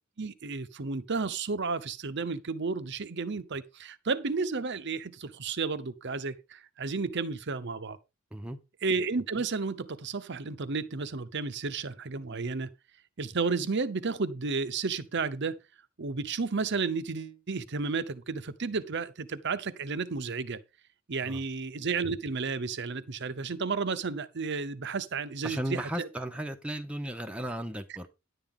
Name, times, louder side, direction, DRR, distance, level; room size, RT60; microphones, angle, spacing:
voice 1, 0.2-8.0 8.8-12.7 13.2-15.6 16.0-20.6 21.1-26.1, right 4 dB, 55° right, 0.8 m, -32 dB
voice 2, 25.4-28.1, right 1 dB, 5° right, 0.8 m, -35 dB
11.0 x 8.8 x 3.7 m
head